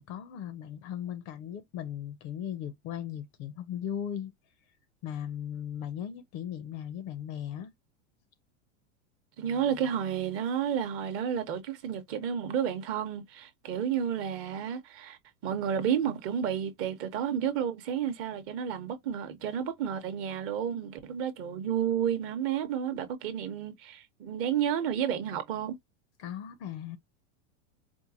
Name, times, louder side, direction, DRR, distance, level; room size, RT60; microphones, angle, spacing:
voice 1, 0.0-4.3 5.0-7.7 26.2-27.0, left 9 dB, 40° left, 0.5 m, -37 dB
voice 2, 9.4-25.8, right 9 dB, 40° right, 0.8 m, -31 dB
4.5 x 2.1 x 2.7 m
supercardioid pair, 145°, 37 cm